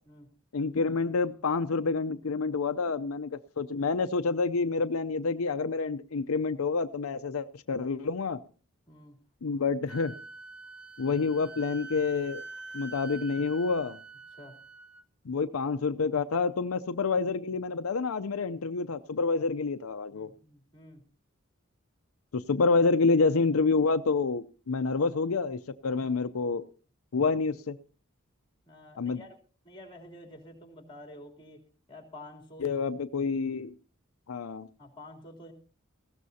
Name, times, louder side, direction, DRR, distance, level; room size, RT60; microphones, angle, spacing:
voice 1, 0.5-3.3 3.6-8.4 9.4-10.1 11.0-12.4 12.7-14.0 15.2-20.3 22.3-26.7 27.1-27.8 29.0-29.2 32.6-33.7 34.3-34.7, left 4 dB, 85° left, 10 dB, 0.6 m, -28 dB
Wind instrument woodwind instrument, 9.9-15.0, right 3 dB, 5° right, 0.7 m, -45 dB
voice 2, 20.1-21.0 28.7-29.3 29.6-31.6 31.9-32.7 34.8-35.5, left 1 dB, 25° left, 1 dB, 3.2 m, -49 dB
19.0 x 16.0 x 2.8 m, 0.38 s
head